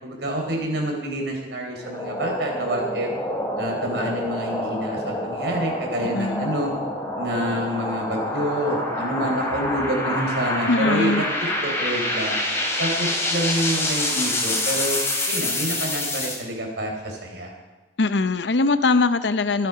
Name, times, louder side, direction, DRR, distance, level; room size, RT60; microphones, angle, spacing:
voice 1, 0.0-3.1 3.6-6.7 7.2-12.4 12.8-15.0 15.3-17.5, right 1 dB, 75° right, 1 dB, 4.3 m, -27 dB
sound 1, 1.8-16.4, left 1 dB, 15° left, 3.3 m, -27 dB
voice 2, 6.0-6.5 10.7-11.3 18.0-19.7, left 3 dB, 85° left, 12 dB, 0.8 m, -21 dB
25.5 x 9.6 x 4.9 m, 1.2 s
head